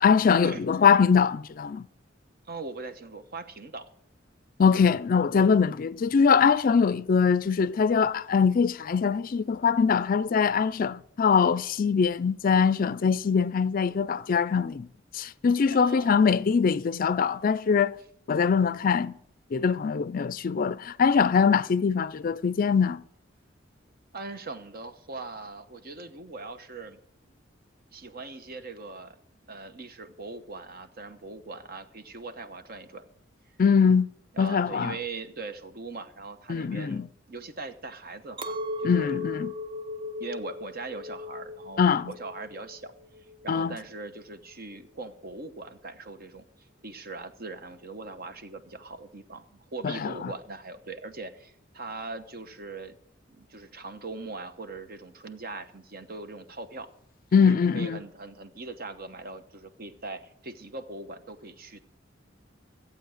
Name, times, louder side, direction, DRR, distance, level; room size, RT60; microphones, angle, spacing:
voice 1, 0.0-1.9 4.6-14.9 15.1-18.0 18.3-19.2 19.5-23.0 33.6-34.1 34.4-35.0 36.5-37.1 38.8-39.5 41.8-42.1 43.5-43.7 49.8-50.1 57.3-58.0, left 6 dB, 45° left, 0.4 m, -23 dB
voice 2, 2.5-3.9 15.7-16.2 24.1-27.0 27.9-29.2 29.5-33.1 34.3-37.0 37.3-39.2 40.2-42.9 43.4-46.4 46.8-53.0 53.3-56.9 57.4-61.8, right 3 dB, 55° right, 1.0 m, -40 dB
Chink clink, 38.4-43.7, left 3 dB, 25° right, 0.7 m, -37 dB
15.0 x 8.4 x 6.5 m
head